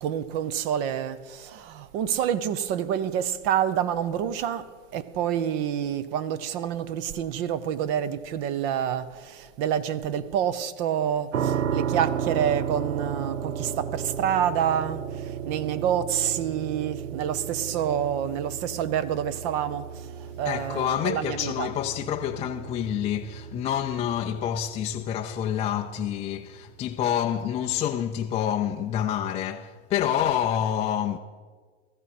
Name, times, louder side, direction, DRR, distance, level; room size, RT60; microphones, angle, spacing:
voice 1, 0.0-4.6 4.9-15.0 15.4-19.9 20.4-21.7, right 9 dB, 50° right, 0.8 m, -27 dB
sound 1, 11.3-26.2, right 8 dB, 90° right, 0.8 m, -34 dB
voice 2, 20.4-31.2, left 10 dB, 20° left, 0.4 m, -28 dB
17.0 x 14.0 x 4.2 m
hypercardioid pair, 115°, 38 cm